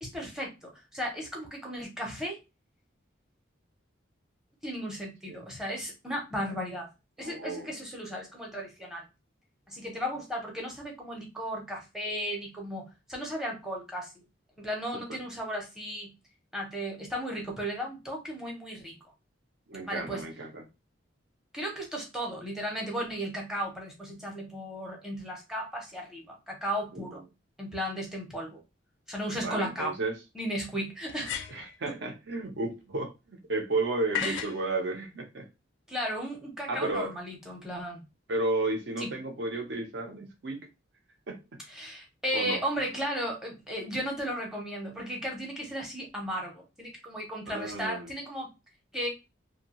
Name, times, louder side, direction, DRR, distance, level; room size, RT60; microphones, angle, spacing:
voice 1, 0.0-2.4 4.6-6.9 7.2-9.0 9.7-14.1 14.6-16.1 16.5-19.0 19.9-20.2 21.5-27.2 27.6-28.6 29.1-29.9 30.3-31.4 34.2-34.4 35.9-38.0 39.0-39.1 41.7-48.5 48.9-49.1, equal, ahead, 0.7 m, -35 dB
voice 2, 7.2-7.8 14.9-15.2 19.7-20.6 26.9-27.1 29.4-30.2 31.5-35.5 36.7-37.1 38.3-40.7 41.3-41.4 42.3-42.6 47.5-48.1, right 2 dB, 60° right, 0.6 m, -33 dB
sound 1, 29.2-29.3 31.1-31.8 34.1-34.6, left 8 dB, 75° left, 0.4 m, -34 dB
2.6 x 2.2 x 2.8 m
head